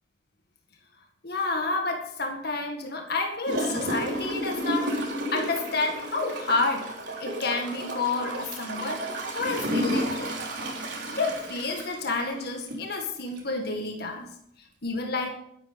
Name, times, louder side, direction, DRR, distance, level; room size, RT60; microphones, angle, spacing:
voice 1, 1.2-6.9 7.2-9.0 9.4-10.4 11.2-14.3 14.8-15.4, left 3 dB, 60° left, 3 dB, 1.9 m, -29 dB
Gurgling / Toilet flush, 3.5-12.9 13.4-13.5, right 1 dB, 85° right, 3.6 m, -32 dB
12.5 x 11.0 x 5.3 m, 0.72 s
head